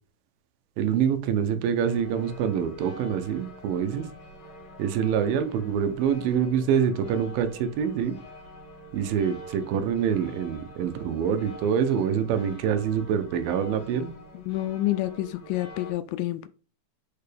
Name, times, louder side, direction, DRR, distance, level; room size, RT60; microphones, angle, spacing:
voice 1, 0.8-4.1 4.8-8.2 8.9-14.1, right 8 dB, 85° right, 2.7 m, -25 dB
sound 1, 1.8-15.9, right 1 dB, 55° left, 3.3 m, -45 dB
voice 2, 14.3-16.5, left 15 dB, 80° left, 2.1 m, -28 dB
6.8 x 5.8 x 3.4 m
omnidirectional pair, 4.1 m